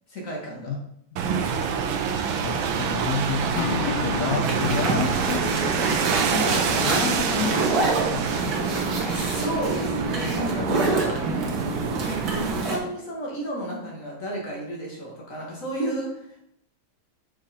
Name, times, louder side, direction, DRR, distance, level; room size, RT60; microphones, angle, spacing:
voice 1, 0.1-0.7 8.7-11.8 12.3-16.5, right 1 dB, 40° left, -3 dB, 1.9 m, -32 dB
voice 2, 1.1-1.7 2.4-5.5 6.2-8.7, left 5 dB, 70° left, 3 dB, 0.8 m, -31 dB
sound 1, 1.2-12.6, right 6 dB, 85° right, 1.5 m, -27 dB
Acoustic guitar / Strum, 3.5-9.0, left 6 dB, 85° left, 1.5 m, -35 dB
sound 2, 4.4-12.8, right 3 dB, 55° right, 1.5 m, -27 dB
6.5 x 4.5 x 4.2 m, 0.75 s
omnidirectional pair, 2.2 m